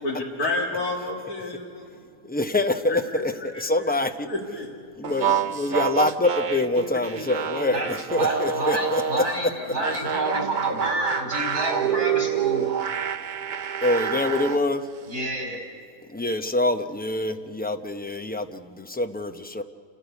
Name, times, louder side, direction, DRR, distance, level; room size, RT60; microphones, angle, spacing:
voice 1, 0.0-2.0 2.9-3.9 4.2-4.7 9.6-10.5, left 2 dB, 75° left, -5 dB, 3.0 m, -31 dB
voice 2, 2.3-4.3 5.0-9.0 13.8-14.8 16.1-19.6, left 2 dB, 10° left, 7 dB, 0.4 m, -25 dB
sound 1, 5.0-9.4 9.8-14.6, right 8 dB, 45° right, 0.6 m, -27 dB
voice 3, 8.1-12.6 15.1-15.6, right 1 dB, 80° right, 2 dB, 4.9 m, -28 dB
29.0 x 13.5 x 8.2 m, 2.3 s
omnidirectional pair, 1.6 m